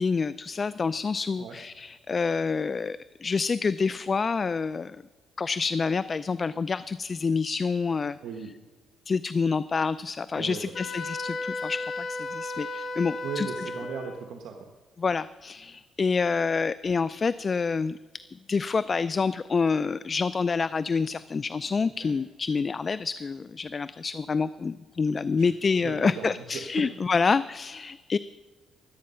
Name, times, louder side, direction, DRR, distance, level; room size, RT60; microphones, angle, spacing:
voice 1, 0.0-5.0 5.4-8.2 9.1-13.5 15.0-17.9 18.5-28.2, left 5 dB, 35° left, 16 dB, 0.3 m, -27 dB
voice 2, 10.3-10.7 13.2-14.7 22.0-22.1 25.4-25.5 25.8-26.6, right 6 dB, 80° right, 3 dB, 1.3 m, -37 dB
Wind instrument woodwind instrument, 10.7-14.2, left 2 dB, 50° left, 1.5 m, -34 dB
22.0 x 8.6 x 5.6 m, 1.3 s
cardioid pair, 90°, 0 cm